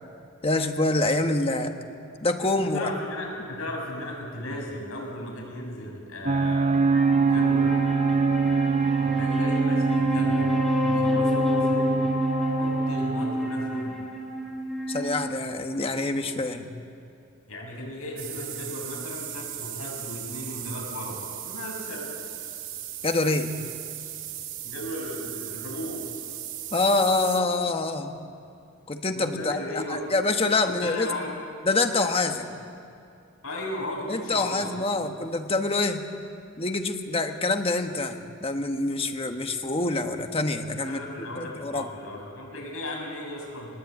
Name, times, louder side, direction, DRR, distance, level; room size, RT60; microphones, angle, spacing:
voice 1, 0.4-1.7 2.2-2.9 3.4-3.5 14.9-16.7 23.0-23.5 26.7-28.2 28.9-31.1 31.6-32.5 34.1-36.1 36.6-41.9, left 2 dB, 25° left, 6 dB, 1.4 m, -26 dB
voice 2, 2.7-6.7 7.2-7.6 9.0-10.5 10.8-12.0 12.6-14.0 17.5-22.1 24.6-26.0 29.1-30.0 30.6-31.3 33.4-34.7 35.0-35.1 40.8-43.7, left 1 dB, 75° left, -1 dB, 6.8 m, -36 dB
sound 1, 6.3-13.3, right 4 dB, 30° right, 0.5 m, -24 dB
Wind instrument woodwind instrument, 6.7-16.2, equal, ahead, 3.2 m, -28 dB
sound 2, 18.2-27.4, right 11 dB, 65° right, 2.0 m, -37 dB
20.0 x 19.5 x 8.8 m, 2.5 s
head